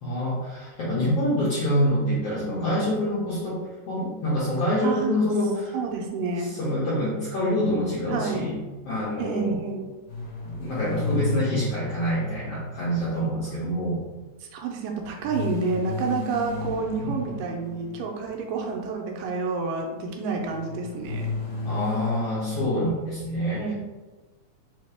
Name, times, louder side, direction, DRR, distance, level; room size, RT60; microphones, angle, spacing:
voice 1, 0.0-3.6 3.9-5.8 6.4-8.6 8.9-9.6 10.6-14.0 17.0-17.2 21.6-23.6, equal, 75° left, -8 dB, 1.4 m, -26 dB
voice 2, 4.8-5.2 5.7-6.5 8.1-8.5 9.2-9.8 14.5-21.3 23.6-23.7, right 4 dB, 85° right, 1 dB, 2.2 m, -29 dB
sound 1, 10.1-13.6 15.2-18.3 20.4-22.7, left 3 dB, 50° left, 1.5 m, -33 dB
4.9 x 2.7 x 3.3 m, 1.2 s
omnidirectional pair, 3.9 m